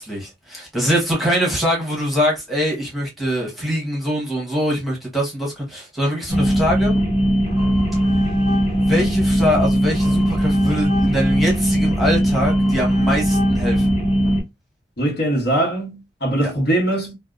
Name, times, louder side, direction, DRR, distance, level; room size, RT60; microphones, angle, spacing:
voice 1, 0.0-7.0 8.8-13.9 16.4-16.5, equal, ahead, 0.9 m, -23 dB
sound 1, 6.3-14.4, equal, 40° left, 1.0 m, -19 dB
voice 2, 15.0-17.1, right 1 dB, 65° left, 1.1 m, -21 dB
2.6 x 2.1 x 2.3 m
head